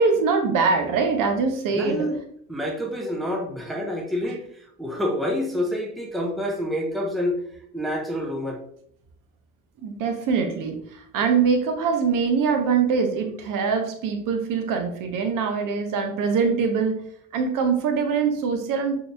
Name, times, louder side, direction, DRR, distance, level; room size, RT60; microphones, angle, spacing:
voice 1, 0.0-2.1 9.8-17.0 17.3-19.0, right 5 dB, 45° right, 5 dB, 0.8 m, -23 dB
voice 2, 1.7-2.2 2.5-4.4 4.8-7.4 7.7-8.6, equal, ahead, 1 dB, 0.7 m, -27 dB
6.2 x 2.9 x 2.3 m, 0.66 s
figure-of-eight pair, 50°, 44 cm